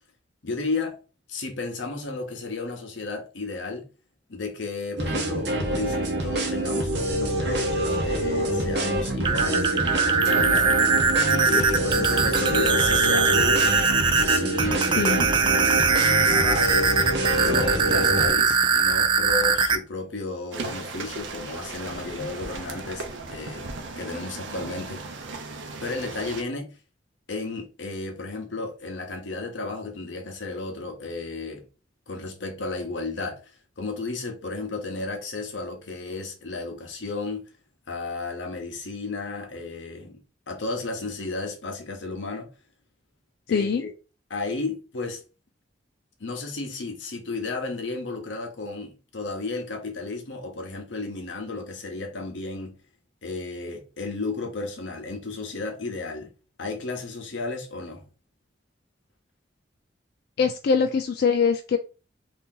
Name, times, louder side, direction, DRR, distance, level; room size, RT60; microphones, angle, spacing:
voice 1, 0.4-1.0 1.3-3.9 4.3-10.8 11.2-13.8 14.2-15.9 16.2-16.9 17.4-25.0 25.8-26.8 27.3-31.6 32.1-37.5 37.9-40.2 40.5-42.5 43.5-43.9 44.3-45.2 46.2-52.8 53.2-56.3 56.6-58.0, left 3 dB, 85° left, 0.9 m, -33 dB
sound 1, 5.0-18.3, right 1 dB, 65° right, 0.9 m, -26 dB
sound 2, 9.1-19.8, right 4 dB, 25° right, 0.3 m, -22 dB
sound 3, 20.5-26.4, right 3 dB, 90° right, 0.6 m, -36 dB
voice 2, 43.5-43.8 60.4-61.8, left 5 dB, 55° left, 0.3 m, -23 dB
2.8 x 2.8 x 3.6 m
head